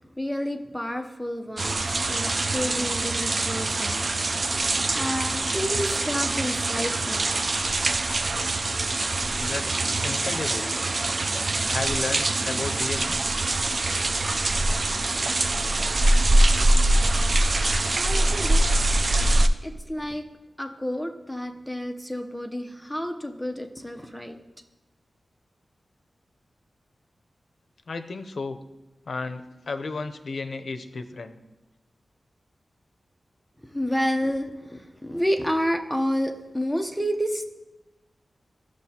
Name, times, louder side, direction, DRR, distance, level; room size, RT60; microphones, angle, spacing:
voice 1, 0.0-4.1 4.9-7.4 17.9-18.7 19.6-20.2 20.6-24.4 33.6-37.4, equal, ahead, 4 dB, 0.7 m, -30 dB
sound 1, 1.6-19.5, right 2 dB, 45° right, 0.4 m, -24 dB
voice 2, 9.4-9.7 10.0-10.8 11.7-13.2 27.9-28.6 29.1-31.4, left 3 dB, 65° left, 9 dB, 0.6 m, -33 dB
13.5 x 6.3 x 2.8 m, 1.0 s
wide cardioid pair, 105°, 0 cm